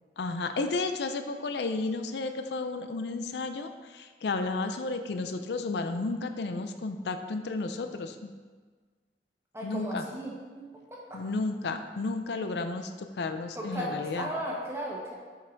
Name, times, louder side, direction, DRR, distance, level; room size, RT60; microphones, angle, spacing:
voice 1, 0.2-8.3 9.6-10.0 11.1-14.3, left 3 dB, 75° left, 8 dB, 0.5 m, -32 dB
voice 2, 9.5-10.4 10.9-11.0 13.5-15.1, equal, 15° right, -4 dB, 1.3 m, -35 dB
7.7 x 5.6 x 3.9 m, 1.5 s
head